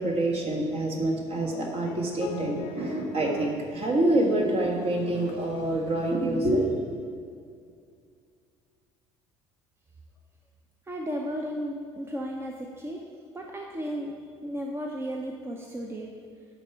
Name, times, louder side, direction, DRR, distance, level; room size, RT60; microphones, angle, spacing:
voice 1, 0.0-6.8, right 1 dB, 45° right, 0 dB, 1.7 m, -26 dB
sound 1, 1.8-3.7 4.0-5.6 6.1-6.3, left 6 dB, 55° left, 0.8 m, -42 dB
voice 2, 10.9-13.0 13.3-14.1 14.4-16.1, equal, 15° right, 0 dB, 0.9 m, -34 dB
11.0 x 3.7 x 6.8 m, 2.2 s
figure-of-eight pair, 60°, 15 cm